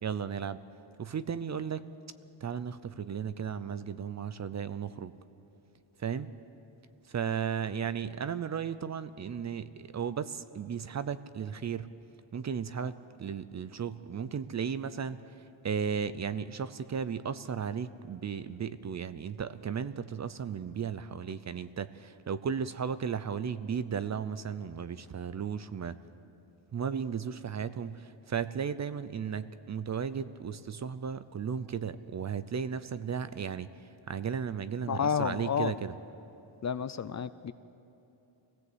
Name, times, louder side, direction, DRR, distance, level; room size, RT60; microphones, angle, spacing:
voice 1, 0.0-0.6 1.0-1.9 2.4-5.1 6.0-6.3 7.1-11.9 12.3-15.2 15.6-26.0 26.7-35.9, right 7 dB, 35° right, 14 dB, 0.6 m, -35 dB
voice 2, 34.9-35.7 36.6-37.5, left 7 dB, 40° left, 14 dB, 0.5 m, -30 dB
25.0 x 17.0 x 8.0 m, 2.9 s
wide cardioid pair, 155°, 47 cm